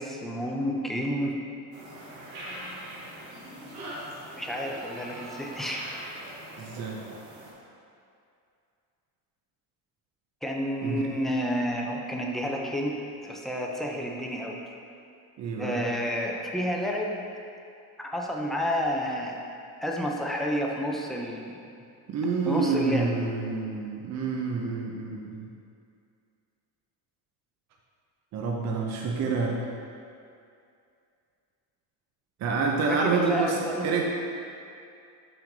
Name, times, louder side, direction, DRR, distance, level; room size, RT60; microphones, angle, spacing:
voice 1, 0.0-1.4 4.4-5.9 10.4-13.0 13.2-14.6 15.6-17.2 18.0-19.4 19.8-21.5 22.5-23.1 32.9-33.9, equal, ahead, -1 dB, 0.4 m, -30 dB
sound 1, 1.7-7.5, right 1 dB, 60° right, 1.5 m, -42 dB
voice 2, 6.6-7.0 10.8-11.0 15.4-15.8 22.1-25.5 28.3-29.6 32.4-34.0, right 4 dB, 40° right, 0 dB, 0.6 m, -28 dB
5.9 x 5.2 x 3.8 m, 2.5 s
cardioid pair, 140°, 41 cm